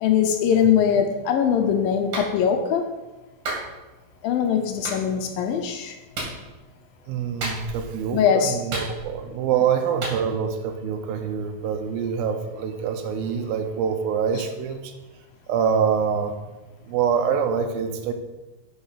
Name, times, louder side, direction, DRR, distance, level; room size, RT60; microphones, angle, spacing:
voice 1, 0.0-2.9 4.2-6.0 8.1-8.6, left 8 dB, 80° left, 6 dB, 2.4 m, -21 dB
Clapping, 2.1-2.3 3.5-3.7 4.8-5.0 6.1-6.4 7.4-7.9 8.7-9.3 10.0-10.2, right 2 dB, 55° right, 3.7 m, -30 dB
voice 2, 7.1-14.9 15.5-16.3 16.9-18.1, right 7 dB, 80° right, 6 dB, 2.6 m, -25 dB
8.1 x 6.3 x 5.7 m, 1.1 s
omnidirectional pair, 4.3 m